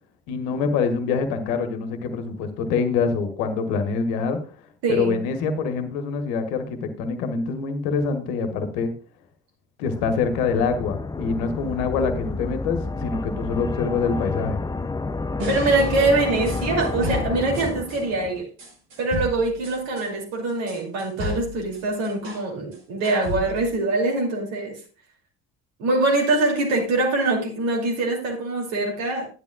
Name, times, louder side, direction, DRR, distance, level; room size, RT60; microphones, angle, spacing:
voice 1, 0.3-4.4 4.9-8.9 9.8-14.6, left 5 dB, 70° left, 8 dB, 1.4 m, -25 dB
voice 2, 4.8-5.2 15.5-18.5 19.0-24.8 25.8-29.3, right 2 dB, 65° right, -1 dB, 2.8 m, -23 dB
sound 1, 9.9-18.4, left 3 dB, 10° left, 0.5 m, -30 dB
sound 2, 15.4-18.0 18.6-22.5 22.7-23.7, left 2 dB, 85° right, 2.3 m, -34 dB
11.5 x 10.5 x 2.3 m, 0.36 s
figure-of-eight pair, 45°, 49 cm